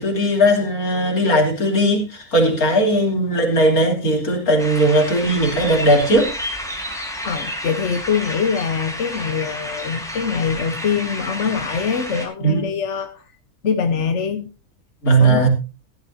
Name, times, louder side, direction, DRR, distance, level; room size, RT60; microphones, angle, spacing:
voice 1, 0.0-6.3 12.4-12.6 15.0-15.5, right 1 dB, 70° left, 3.8 m, -17 dB
sound 1, 4.6-12.2, equal, ahead, 3.5 m, -30 dB
voice 2, 7.2-13.2 13.6-14.5 15.2-15.5, left 6 dB, 55° left, 1.3 m, -23 dB
15.5 x 12.0 x 2.7 m
omnidirectional pair, 1.6 m